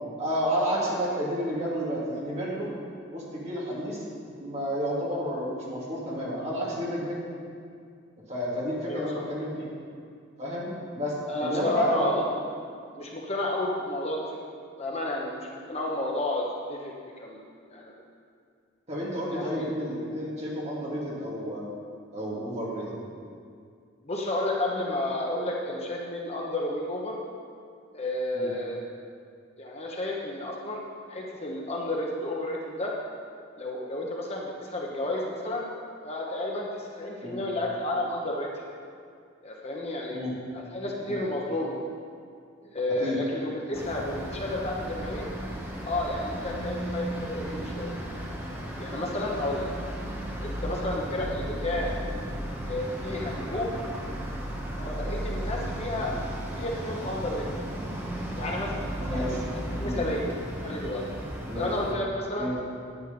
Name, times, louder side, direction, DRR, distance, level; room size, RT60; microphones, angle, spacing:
voice 1, 0.2-2.7 3.1-4.0 4.4-7.2 8.3-9.7 10.4-12.1 18.9-21.7 22.1-23.0 28.3-28.5 37.2-37.4 40.1-40.3 41.1-41.2 42.9-43.2 56.0-56.1 59.0-59.4 59.8-60.0 61.5-61.7 62.4-62.6, equal, 35° right, -6 dB, 2.6 m, -31 dB
voice 2, 8.9-9.2 11.3-12.3 12.9-14.3 14.8-17.4 17.7-18.0 19.3-19.7 24.0-27.2 27.9-28.8 29.6-30.8 31.1-32.9 33.6-35.7 36.0-38.5 39.4-40.3 40.5-41.8 42.7-45.3 45.9-47.9 48.8-49.7 50.4-51.9 52.6-53.8 54.8-56.1 56.5-57.4 58.4-59.3 59.5-60.3 60.6-61.0 61.5-62.5, left 1 dB, 30° left, -2 dB, 1.0 m, -31 dB
sound 1, 43.7-61.9, right 1 dB, 10° right, 1.1 m, -35 dB
9.7 x 9.7 x 5.3 m, 2.3 s
head